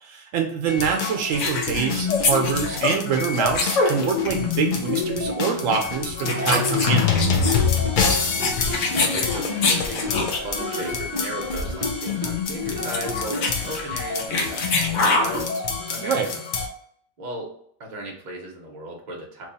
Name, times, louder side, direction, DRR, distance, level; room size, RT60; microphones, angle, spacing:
voice 1, 0.0-7.1 16.0-16.3, right 6 dB, 75° right, 3 dB, 1.0 m, -25 dB
sound 1, 0.7-16.7, left 5 dB, 55° left, 0.6 m, -26 dB
sound 2, 1.3-4.5 4.7-5.0 5.7-5.9 6.2-10.5 10.8-11.0 11.2-11.3 11.5-11.8 12.1-12.2 12.6-15.4, left 3 dB, 70° left, 1.0 m, -25 dB
sound 3, 4.8-5.9 6.2-8.1 8.4-10.2 10.6-12.5 12.8-13.6, right 1 dB, 20° right, 0.6 m, -33 dB
voice 2, 8.1-15.6 15.9-16.2 17.2-17.5 17.8-19.5, right 1 dB, 40° right, 0 dB, 0.9 m, -36 dB
3.0 x 2.3 x 4.0 m, 0.67 s
omnidirectional pair, 1.4 m